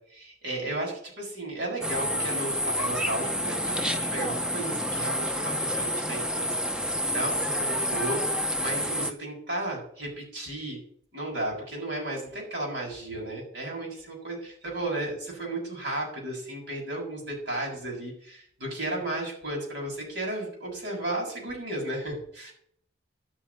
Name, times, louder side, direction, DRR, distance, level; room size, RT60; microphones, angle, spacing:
voice 1, 0.1-10.8 11.1-22.5, right 1 dB, 60° right, -2 dB, 7.1 m, -34 dB
sound 1, 1.8-9.1, equal, 5° right, 0.7 m, -29 dB
12.0 x 7.1 x 9.8 m, 0.63 s
head